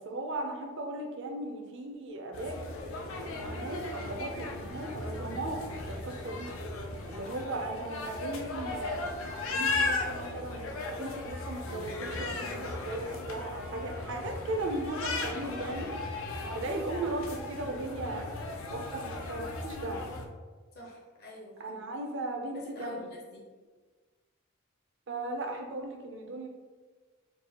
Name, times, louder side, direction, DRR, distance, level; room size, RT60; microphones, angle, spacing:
voice 1, 0.0-2.6 3.2-5.6 6.0-6.5 7.1-15.9 16.5-18.3 18.7-20.1 21.6-23.0 25.1-26.5, right 2 dB, 60° right, 3 dB, 0.5 m, -37 dB
sound 1, 2.3-20.3, left 2 dB, 70° left, 0.5 m, -36 dB
voice 2, 20.7-21.8 22.5-23.5, equal, 45° left, -2 dB, 0.8 m, -46 dB
4.6 x 2.3 x 2.8 m, 1.4 s
head